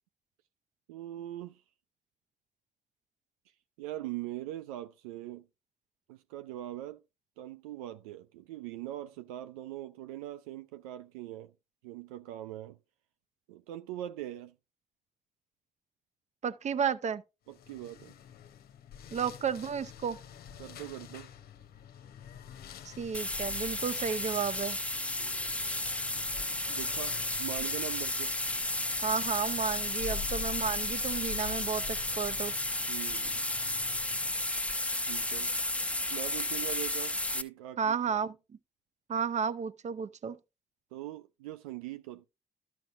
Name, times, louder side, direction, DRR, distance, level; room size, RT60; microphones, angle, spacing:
voice 1, 0.9-1.6 3.8-5.5 6.1-7.0 7.4-11.5 11.8-12.8 13.5-14.5 17.5-18.2 20.6-21.3 26.7-28.4 32.9-33.5 35.1-35.6 36.1-38.2 40.9-42.3, right 14 dB, 75° right, 0.4 m, -41 dB
voice 2, 16.4-17.2 19.1-20.2 22.8-24.8 29.0-32.5 37.8-38.3 39.1-40.4, right 6 dB, 40° right, 0.7 m, -32 dB
sound 1, 17.5-34.6, left 8 dB, 55° left, 0.8 m, -48 dB
sound 2, 23.1-37.4, left 1 dB, 5° left, 1.0 m, -33 dB
13.0 x 5.9 x 2.5 m
figure-of-eight pair, 40°, 18 cm